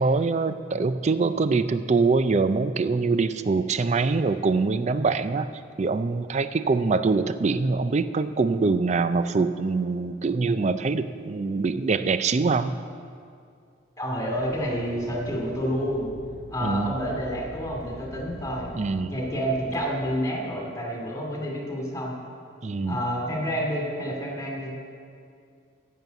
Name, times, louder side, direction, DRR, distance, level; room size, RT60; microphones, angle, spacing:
voice 1, 0.0-5.5 5.8-12.7 16.6-16.9 18.7-19.1 22.6-23.0, right 4 dB, 35° right, 12 dB, 0.4 m, -24 dB
voice 2, 14.0-16.1 16.5-18.7 19.1-22.2 22.9-24.7, equal, 15° left, -1 dB, 2.4 m, -29 dB
sound 1, 14.3-19.7, equal, 75° right, 3.0 m, -44 dB
10.5 x 7.6 x 8.0 m, 2.3 s
head